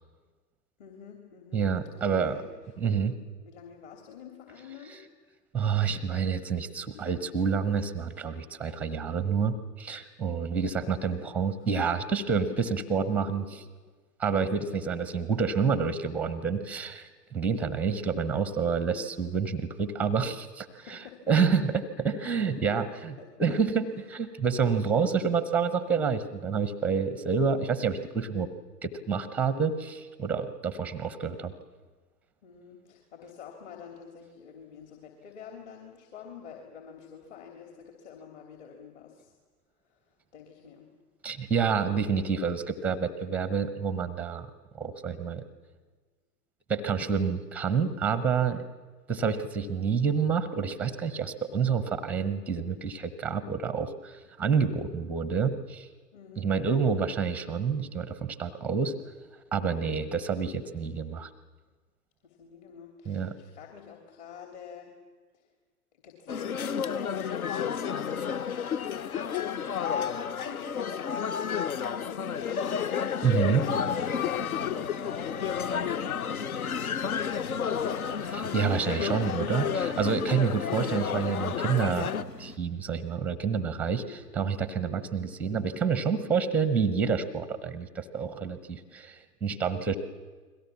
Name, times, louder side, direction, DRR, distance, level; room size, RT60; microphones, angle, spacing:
voice 1, 0.8-3.0 3.4-5.0 10.7-11.3 11.6-11.7 13.3-13.6 14.4-14.7 17.5-17.8 20.8-21.3 22.4-22.7 23.2-23.7 24.0-24.1 24.8-25.1 32.4-39.3 39.9-40.9 56.1-56.5 60.0-60.2 62.2-64.9 65.3-65.5 66.0-73.1 73.9-79.3 83.9-84.3 84.8-85.0, left 7 dB, 45° left, 3 dB, 3.2 m, -48 dB
voice 2, 1.5-2.4 2.8-3.1 4.9-5.0 5.5-13.4 14.2-21.0 21.3-28.5 28.8-31.5 41.2-44.5 44.7-45.4 46.7-48.6 49.1-55.9 56.4-58.9 59.5-61.3 63.1-63.3 73.2-73.7 78.3-82.1 82.4-90.0, right 6 dB, 5° right, 13 dB, 0.7 m, -28 dB
sound 1, 66.3-82.2, left 7 dB, 60° left, 0.9 m, -31 dB
sound 2, 73.2-82.6, left 2 dB, 90° left, 1.3 m, -42 dB
30.0 x 22.0 x 7.1 m, 1.4 s
figure-of-eight pair, 120°, 48 cm